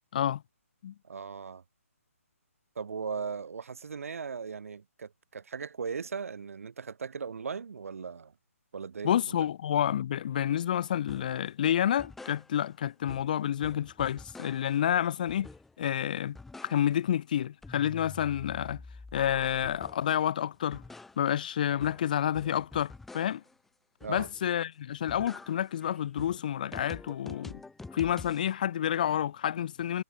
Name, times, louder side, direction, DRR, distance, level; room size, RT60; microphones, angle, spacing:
voice 1, 1.0-1.6 2.8-8.3 8.7-9.4 24.0-24.3, right 5 dB, 65° right, 3.6 m, -38 dB
voice 2, 9.0-15.5 15.8-16.4 16.6-18.8 19.1-20.8 21.2-23.4 24.1-27.6 27.9-30.0, left 10 dB, 35° left, 0.6 m, -29 dB
sound 1, 11.1-11.4 11.8-12.8 13.1-14.9 15.3-15.9 16.2-17.1 17.4-20.2 20.5-23.6 24.0-24.6 24.9-28.5, left 3 dB, 5° left, 1.1 m, -48 dB
hypercardioid pair, 165°, 8 cm